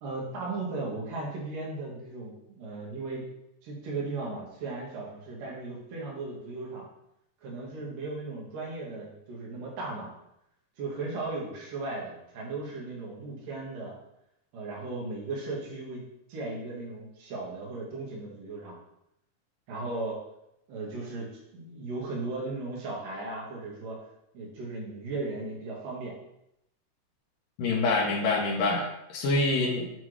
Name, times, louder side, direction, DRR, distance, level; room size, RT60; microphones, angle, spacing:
voice 1, 0.0-3.2 3.6-6.8 7.4-10.1 10.8-14.0 14.5-16.0 16.3-18.8 19.7-20.2 20.7-24.0 24.3-26.1, right 3 dB, 65° right, -3 dB, 2.8 m, -36 dB
voice 2, 27.6-29.9, left 3 dB, 70° left, 0 dB, 2.4 m, -26 dB
7.6 x 3.4 x 4.8 m, 0.82 s
omnidirectional pair, 4.7 m